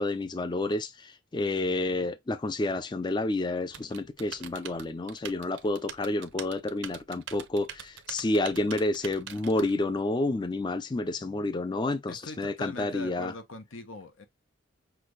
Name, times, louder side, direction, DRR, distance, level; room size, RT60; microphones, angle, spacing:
voice 1, 0.0-13.3, left 2 dB, 20° left, 0.4 m, -29 dB
Typing, 3.7-9.7, right 9 dB, 70° right, 0.6 m, -44 dB
voice 2, 12.1-14.3, left 2 dB, 85° left, 1.0 m, -42 dB
5.9 x 2.6 x 3.1 m
head